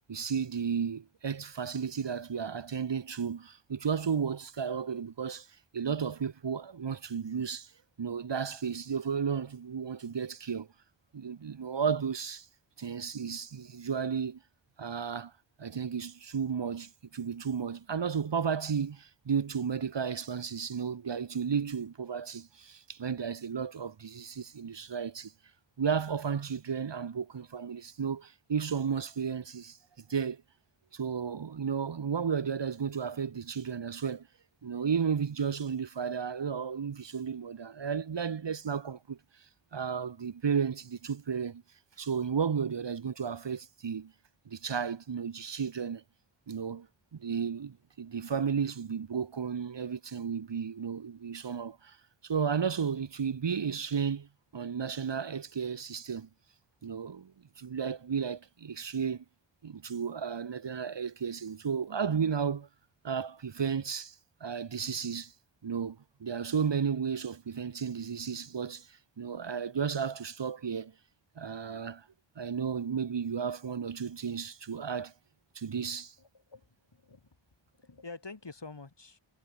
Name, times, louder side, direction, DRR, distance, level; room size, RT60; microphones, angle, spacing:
voice 1, 0.1-5.5 5.7-7.7 8.0-10.7 11.1-12.5 12.8-14.4 14.8-15.3 15.6-25.3 25.8-29.8 30.1-30.4 30.9-34.3 34.6-39.2 39.7-41.6 42.0-44.1 44.5-46.0 46.5-46.9 47.1-52.0 52.2-54.3 54.5-56.3 56.8-57.3 57.6-59.2 59.6-62.7 63.0-64.2 64.4-65.3 65.6-70.9 71.4-72.1 72.4-75.1 75.5-76.1, right 6 dB, 60° right, 1.0 m, -33 dB
voice 2, 76.2-77.2 77.8-79.2, left 3 dB, 60° left, 4.1 m, -47 dB
wide cardioid pair, 60°, 48 cm